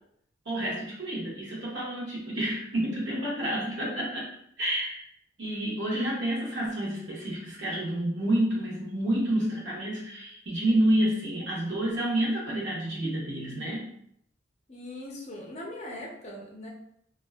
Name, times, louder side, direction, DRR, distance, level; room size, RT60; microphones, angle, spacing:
voice 1, 0.5-4.3 4.6-5.1 5.4-13.9, right 1 dB, 65° right, -4 dB, 0.7 m, -29 dB
voice 2, 14.7-16.7, left 1 dB, 35° left, -1 dB, 0.5 m, -40 dB
2.6 x 2.2 x 2.2 m, 0.72 s
head